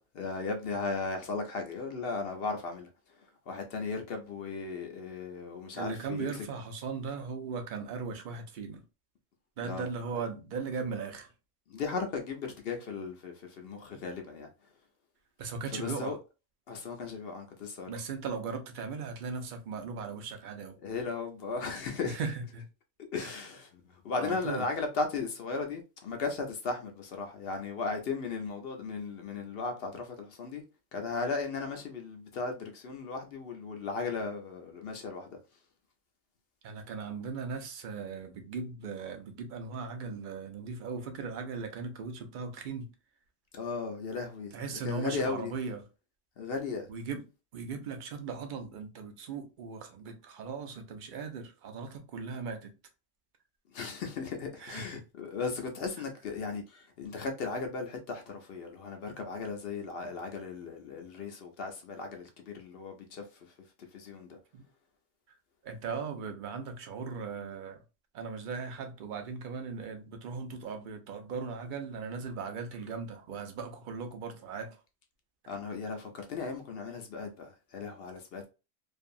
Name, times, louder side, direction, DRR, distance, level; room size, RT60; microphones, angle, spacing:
voice 1, 0.0-2.9 3.5-6.3 9.6-9.9 11.7-14.5 15.7-16.2 16.7-17.9 20.8-22.2 23.0-23.7 24.0-30.6 30.9-35.4 43.5-44.5 44.8-45.5 46.4-46.9 53.7-63.2 63.8-64.4 75.5-78.5, left 4 dB, 60° left, 0.7 m, -36 dB
voice 2, 5.7-8.8 9.6-11.3 13.9-14.0 15.4-16.2 17.9-20.8 22.0-22.6 23.2-23.3 24.2-24.6 36.6-42.9 44.5-45.8 46.9-47.3 47.5-52.7 54.6-55.0 64.5-64.6 65.6-67.8 68.1-74.8, right 5 dB, 55° right, 0.6 m, -38 dB
2.5 x 2.4 x 2.5 m
omnidirectional pair, 1.3 m